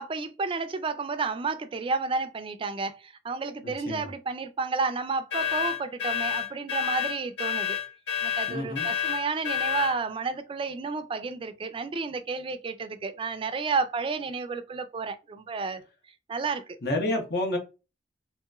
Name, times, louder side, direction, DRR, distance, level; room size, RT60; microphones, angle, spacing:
voice 1, 0.0-7.8 8.2-15.8 16.3-16.6 17.0-17.1, right 4 dB, 30° right, 0.3 m, -31 dB
voice 2, 3.6-4.1 8.5-8.9 16.8-17.6, left 1 dB, 65° left, 0.9 m, -29 dB
sound 1, 5.3-10.0, left 9 dB, 85° left, 1.5 m, -29 dB
3.0 x 2.8 x 2.3 m
head